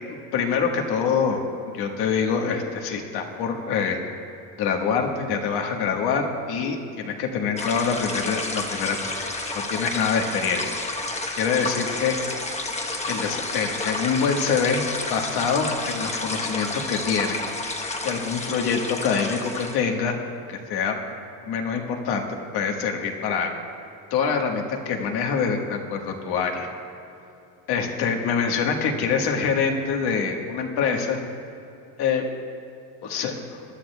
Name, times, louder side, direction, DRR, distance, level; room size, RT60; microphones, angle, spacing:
voice 1, 0.1-1.4 1.7-4.0 4.6-9.2 9.7-10.6 11.4-12.2 13.1-14.8 15.1-17.4 18.0-20.2 20.5-21.0 21.4-22.2 22.5-23.5 24.1-26.7 27.7-31.2 32.0-32.2 33.0-33.3, left 6 dB, 75° left, 2 dB, 1.6 m, -25 dB
sound 1, 7.6-19.8, left 2 dB, 15° left, 1.1 m, -30 dB
22.0 x 11.5 x 2.3 m, 2.8 s
cardioid pair, 115°, 39 cm